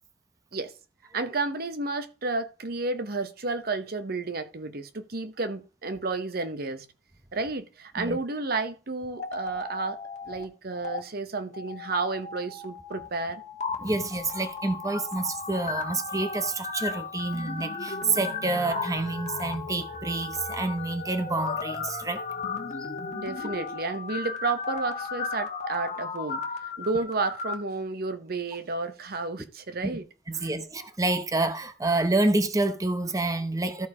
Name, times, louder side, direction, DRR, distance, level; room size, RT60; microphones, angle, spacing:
voice 1, 1.1-6.9 7.3-10.0 10.3-13.4 23.1-26.4 26.8-30.1, right 3 dB, 55° right, 0.9 m, -31 dB
sound 1, 9.1-10.4 10.7-11.0 11.5-27.5, left 4 dB, 40° left, 1.3 m, -35 dB
voice 2, 13.8-22.2 22.8-22.9 29.8-29.9 30.3-33.9, right 2 dB, 20° right, 0.9 m, -28 dB
13.0 x 4.5 x 4.9 m
head